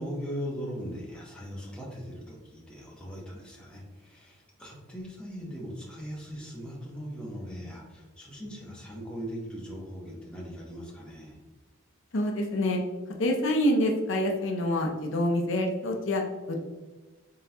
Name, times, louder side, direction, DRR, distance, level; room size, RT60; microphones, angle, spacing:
voice 1, 0.0-11.4, equal, 5° left, -4 dB, 0.9 m, -39 dB
voice 2, 12.1-12.8 13.2-16.6, left 1 dB, 60° left, 2 dB, 0.5 m, -26 dB
4.0 x 3.8 x 2.7 m, 1.3 s
head